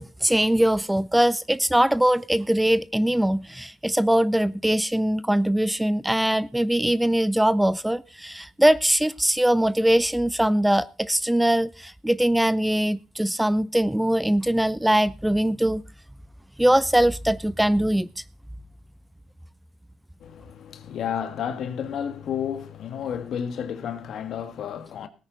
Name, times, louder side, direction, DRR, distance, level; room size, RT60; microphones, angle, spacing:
voice 1, 0.0-15.8 16.6-18.1, right 1 dB, 5° right, 0.5 m, -22 dB
voice 2, 20.2-25.1, left 8 dB, 70° left, 1.5 m, -31 dB
18.0 x 9.4 x 3.9 m
cardioid pair, 90°, 0 cm